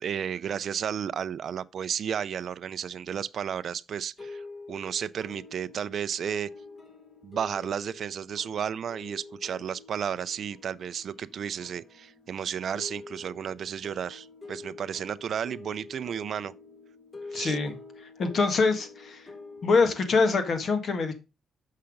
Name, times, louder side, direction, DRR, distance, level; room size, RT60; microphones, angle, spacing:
voice 1, 0.0-6.5 7.2-16.5 17.3-17.6, right 8 dB, 60° right, 0.4 m, -33 dB
sound 1, 4.2-20.3, left 3 dB, 30° left, 1.8 m, -47 dB
voice 2, 17.3-17.8 18.2-19.3 19.6-21.1, left 4 dB, 50° left, 1.6 m, -24 dB
6.6 x 5.8 x 5.1 m
cardioid pair, 90°, 0 cm